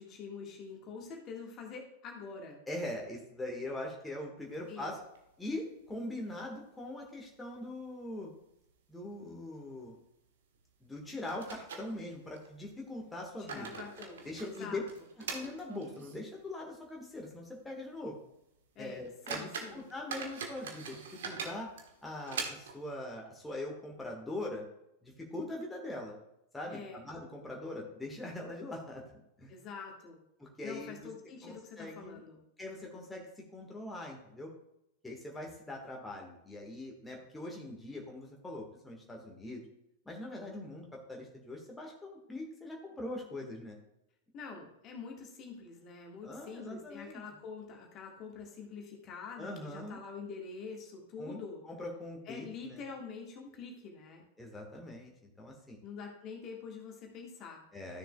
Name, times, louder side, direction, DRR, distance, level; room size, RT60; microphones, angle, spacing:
voice 1, 0.0-2.6 4.7-4.9 13.4-14.8 18.7-19.9 26.7-27.0 29.5-30.2 30.6-32.4 44.3-51.6 52.3-54.2 55.8-57.6, left 5 dB, 35° left, 1 dB, 1.6 m, -46 dB
voice 2, 2.7-5.0 5.4-8.3 8.9-10.0 10.8-13.7 14.2-14.8 15.3-18.2 18.8-21.7 22.0-24.6 25.0-26.2 26.5-29.0 29.4-29.6 30.4-31.1 31.4-32.2 32.6-34.5 35.0-39.6 40.0-43.8 46.2-47.2 49.4-50.0 51.2-51.4 51.6-52.8 54.4-55.1 55.4-55.8 57.7-58.0, left 1 dB, 10° left, -1 dB, 1.5 m, -42 dB
sound 1, 4.5-5.5 5.8-5.9 6.3-6.4 7.0-7.5 7.8-7.9 8.5-8.7 9.0-9.2 10.6-10.7 11.3-12.5 13.1-16.3 16.7-16.8 17.3-17.4 17.9-18.0 18.6-18.7 19.0-22.9, right 5 dB, 60° right, 1.2 m, -43 dB
13.5 x 6.6 x 2.3 m, 0.83 s
figure-of-eight pair, 95°, 0 cm